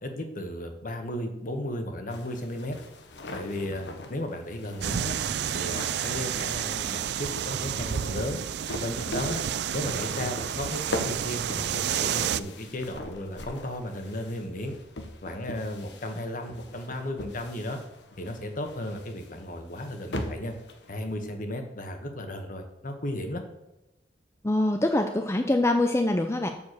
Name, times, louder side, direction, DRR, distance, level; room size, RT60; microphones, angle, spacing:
voice 1, 0.0-2.8 3.3-5.2 5.5-8.4 8.8-9.4 9.7-14.7 15.2-17.8 18.2-20.5 20.9-23.4, left 1 dB, 50° left, 5 dB, 1.5 m, -34 dB
sound 1, 2.1-21.3, left 1 dB, 80° left, 1.1 m, -41 dB
sound 2, 4.8-12.4, right 9 dB, 65° right, 0.4 m, -30 dB
voice 2, 24.4-26.5, left 1 dB, 15° left, 5 dB, 0.6 m, -24 dB
7.1 x 7.0 x 6.7 m, 0.94 s
head